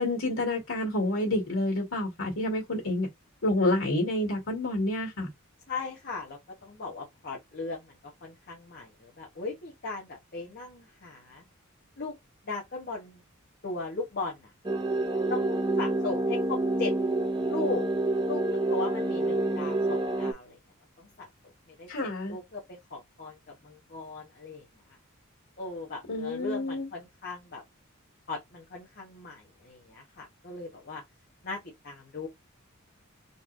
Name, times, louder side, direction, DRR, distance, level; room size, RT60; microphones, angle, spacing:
voice 1, 0.0-3.1 3.4-5.3 21.9-22.4 26.1-26.9, left 1 dB, 80° left, 1.9 m, -28 dB
voice 2, 5.7-11.4 12.0-12.2 12.4-13.2 13.6-14.5 15.3-15.5 15.8-16.9 17.5-17.9 18.3-20.6 21.0-24.7 25.6-27.6 28.3-31.0 31.4-31.6 31.8-32.3, left 3 dB, 50° left, 1.2 m, -38 dB
sound 1, 14.6-20.3, right 2 dB, 20° right, 0.6 m, -28 dB
4.0 x 3.2 x 2.5 m
head